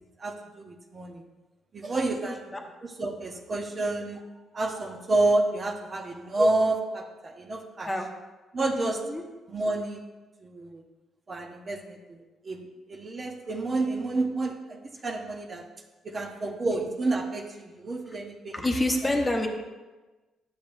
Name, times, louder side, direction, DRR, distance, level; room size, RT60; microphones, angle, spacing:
voice 1, 0.2-1.2 1.7-2.6 2.8-4.2 4.5-7.9 8.5-9.0 9.5-10.0 10.4-10.8 11.3-15.7 16.0-18.5 19.0-19.1, right 2 dB, 35° right, 3 dB, 0.8 m, -29 dB
voice 2, 2.2-2.6 7.9-8.1 8.7-9.2 16.1-16.2 18.1-18.2 18.5-19.5, left 1 dB, 20° left, 2 dB, 1.0 m, -28 dB
10.5 x 6.8 x 2.6 m, 1.2 s
cardioid pair, 90°, 0 cm